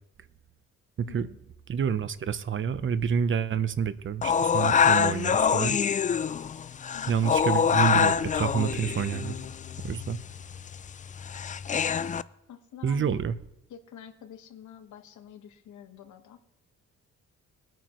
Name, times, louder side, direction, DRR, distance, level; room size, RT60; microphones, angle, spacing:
voice 1, 1.0-1.4 6.9-7.2 12.5-13.2 13.7-16.4, left 9 dB, 70° left, 8 dB, 1.3 m, -47 dB
voice 2, 1.7-5.8 7.1-9.3 9.8-10.2 12.8-13.3, right 7 dB, 40° right, 14 dB, 0.8 m, -28 dB
sound 1, 4.2-12.2, left 7 dB, 25° left, 0.3 m, -25 dB
22.0 x 9.1 x 3.1 m, 0.88 s
cardioid pair, 90°, 30 cm